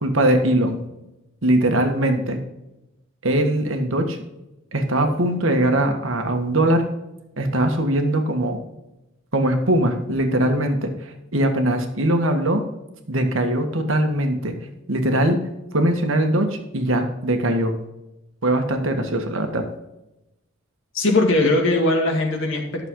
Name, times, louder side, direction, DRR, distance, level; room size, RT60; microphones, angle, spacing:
voice 1, 0.0-0.8 1.4-2.4 3.2-4.2 4.7-6.8 7.4-8.6 9.3-10.9 11.3-12.6 13.1-14.6 14.9-15.4 15.7-17.8 18.4-19.6, right 1 dB, 65° right, 5 dB, 1.5 m, -21 dB
voice 2, 20.9-22.9, left 2 dB, 65° left, 2 dB, 2.0 m, -20 dB
11.5 x 6.8 x 3.8 m, 0.91 s
head